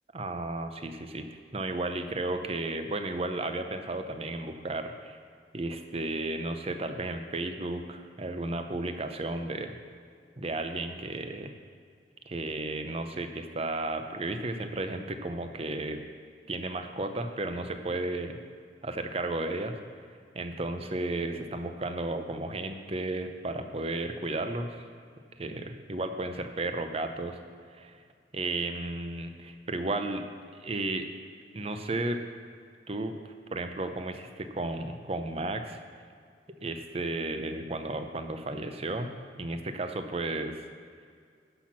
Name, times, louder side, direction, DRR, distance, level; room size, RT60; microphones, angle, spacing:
voice 1, 0.1-1.3 1.5-5.2 5.5-9.8 10.4-11.5 12.3-16.0 16.5-18.4 18.8-19.8 20.3-24.8 25.4-27.4 27.7-28.0 28.3-30.3 30.6-31.1 31.5-32.2 32.9-33.2 33.5-35.8 36.6-39.1 39.4-40.6, right 2 dB, 35° right, 7 dB, 0.6 m, -33 dB
10.5 x 6.0 x 5.9 m, 2.1 s
head